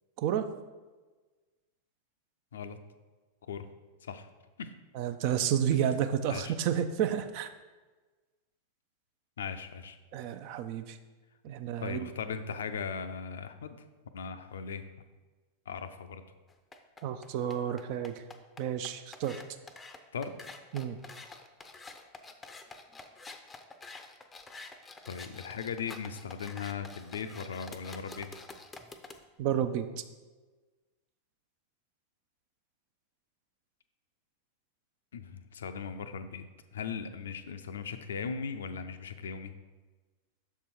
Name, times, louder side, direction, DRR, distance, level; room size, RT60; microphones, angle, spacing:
voice 1, 0.2-0.5 4.9-7.5 10.1-11.0 11.4-12.1 17.0-18.1 18.6-19.4 20.7-21.0 29.4-29.9, right 9 dB, 45° right, 10 dB, 0.4 m, -30 dB
voice 2, 9.4-10.0 11.8-13.8 14.1-14.8 15.7-16.2 20.1-20.3 25.0-28.4 35.1-36.4 36.7-39.5, left 6 dB, 65° left, 9 dB, 0.5 m, -38 dB
sound 1, 16.5-29.2, left 3 dB, 15° left, 0.5 m, -48 dB
6.9 x 4.6 x 4.3 m, 1.3 s
figure-of-eight pair, 90°, 0 cm